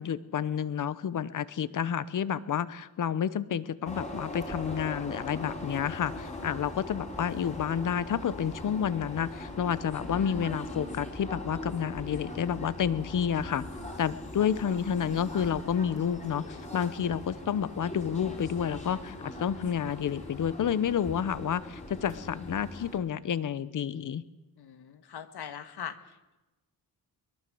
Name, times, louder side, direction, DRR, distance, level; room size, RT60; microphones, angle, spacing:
voice 1, 0.0-13.6 14.0-24.2, left 8 dB, 55° left, 16 dB, 1.0 m, -30 dB
sound 1, 3.9-23.0, left 1 dB, 20° left, 4.3 m, -40 dB
voice 2, 24.6-26.0, left 8 dB, 85° left, 10 dB, 1.9 m, -41 dB
22.5 x 22.0 x 7.9 m, 1.0 s
wide cardioid pair, 175°, 38 cm